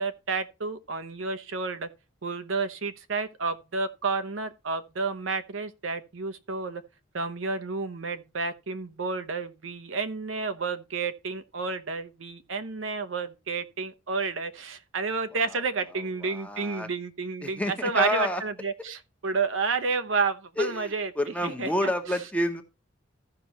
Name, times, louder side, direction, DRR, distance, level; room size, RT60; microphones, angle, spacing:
voice 1, 0.0-1.9 2.2-6.8 7.1-21.1 21.4-21.9, right 4 dB, 80° right, 0.9 m, -30 dB
voice 2, 16.2-16.9 17.4-18.4 20.6-22.6, left 1 dB, 5° left, 1.0 m, -29 dB
14.5 x 5.8 x 2.9 m
head